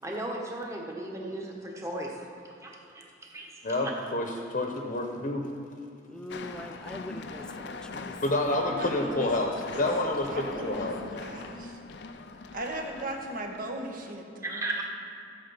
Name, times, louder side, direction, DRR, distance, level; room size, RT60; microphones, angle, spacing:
voice 1, 0.0-3.9 14.4-14.8, right 1 dB, 15° right, -1 dB, 1.5 m, -36 dB
voice 2, 3.6-5.5 8.2-9.5 9.8-11.2, left 2 dB, 45° left, 2 dB, 1.0 m, -29 dB
voice 3, 6.1-8.2, left 1 dB, 5° left, 9 dB, 0.4 m, -42 dB
sound 1, 6.3-14.1, left 3 dB, 65° left, 0.6 m, -42 dB
voice 4, 7.5-8.3 11.1-12.6, right 1 dB, 80° right, -9 dB, 2.3 m, -61 dB
voice 5, 8.6-9.3 9.7-9.8 10.3-11.7 12.5-14.6, right 1 dB, 50° right, 2 dB, 1.3 m, -37 dB
14.0 x 7.7 x 5.7 m, 2.6 s
head